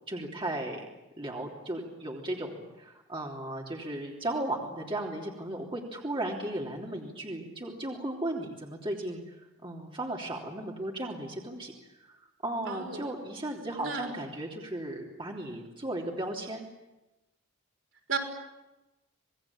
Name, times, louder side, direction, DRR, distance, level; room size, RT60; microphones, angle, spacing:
voice 1, 0.1-0.9 1.2-9.3 9.6-11.7 12.0-12.1 12.4-16.6, right 1 dB, 25° right, -1 dB, 3.3 m, -35 dB
voice 2, 12.7-13.0 13.8-14.1 18.1-18.2, right 5 dB, 70° right, 1 dB, 5.7 m, -33 dB
27.5 x 20.5 x 8.7 m, 1.0 s
head